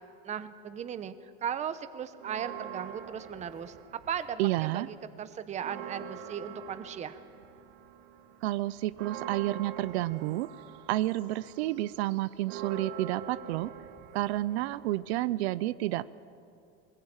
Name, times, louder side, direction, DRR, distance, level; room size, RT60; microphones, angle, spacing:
voice 1, 0.2-1.1 1.4-3.7 4.1-7.2, right 8 dB, 20° right, 12 dB, 0.9 m, -37 dB
sound 1, 2.2-4.6 4.9-15.4, right 8 dB, 60° right, 2.4 m, -45 dB
voice 2, 4.4-4.9 8.4-10.5 10.9-13.7 14.1-16.0, right 16 dB, 75° right, 16 dB, 0.7 m, -30 dB
23.5 x 20.0 x 8.9 m, 2.6 s
supercardioid pair, 155°, 32 cm